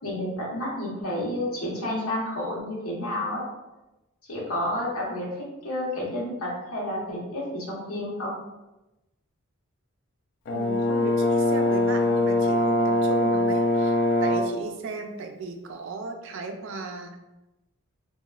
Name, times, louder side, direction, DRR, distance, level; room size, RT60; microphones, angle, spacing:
voice 1, 0.0-3.4 4.3-8.3, left 1 dB, 80° left, -4 dB, 0.9 m, -30 dB
Brass instrument, 10.5-14.6, left 1 dB, 55° left, 0.4 m, -22 dB
voice 2, 10.5-13.9 14.2-17.2, right 3 dB, 60° right, 4 dB, 0.3 m, -36 dB
2.9 x 2.2 x 2.3 m, 1.0 s
head